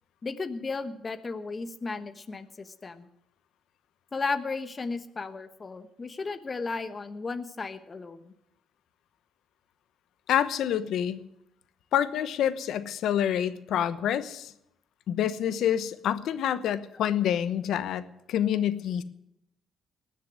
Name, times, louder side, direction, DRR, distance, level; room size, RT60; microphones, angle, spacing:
voice 1, 0.2-3.1 4.1-8.3, left 4 dB, 35° left, 10 dB, 1.1 m, -34 dB
voice 2, 10.3-11.2 11.9-14.5 15.1-18.0 18.3-19.0, left 10 dB, 80° left, 14 dB, 1.0 m, -27 dB
19.5 x 6.7 x 9.5 m, 0.79 s
cardioid pair, 90°, 0 cm